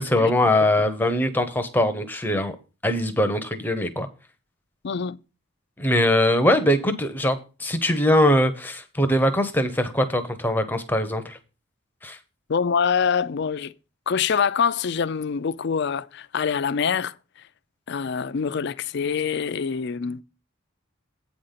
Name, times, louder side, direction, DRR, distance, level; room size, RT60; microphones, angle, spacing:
voice 1, 0.0-2.6 2.8-4.1 5.8-11.4 12.0-12.2, left 1 dB, 10° left, 0.7 m, -22 dB
voice 2, 4.8-5.2 12.5-13.7 14.1-17.1 17.9-20.2, left 6 dB, 55° left, 0.4 m, -25 dB
8.6 x 5.1 x 5.7 m
head